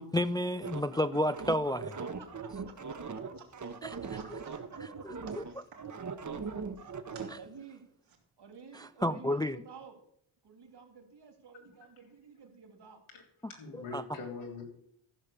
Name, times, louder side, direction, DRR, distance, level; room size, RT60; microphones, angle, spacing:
voice 1, 0.0-2.0 3.8-3.9 5.0-5.4 7.3-7.4 8.7-9.6 13.9-14.0, left 1 dB, 10° left, 12 dB, 0.3 m, -31 dB
sound 1, 0.6-7.3, right 5 dB, 35° right, 1.2 m, -40 dB
voice 2, 1.9-3.5 3.9-5.4 6.2-6.3 7.3-7.9 8.4-10.0 10.4-13.0, right 6 dB, 55° right, 5 dB, 2.7 m, -53 dB
sound 2, 3.3-6.0 6.5-7.3 7.8-8.2, right 6 dB, 75° right, 2.9 m, -59 dB
voice 3, 13.5-14.6, left 4 dB, 85° left, 0 dB, 3.6 m, -42 dB
14.5 x 5.8 x 6.8 m, 0.69 s
cardioid pair, 70°, 48 cm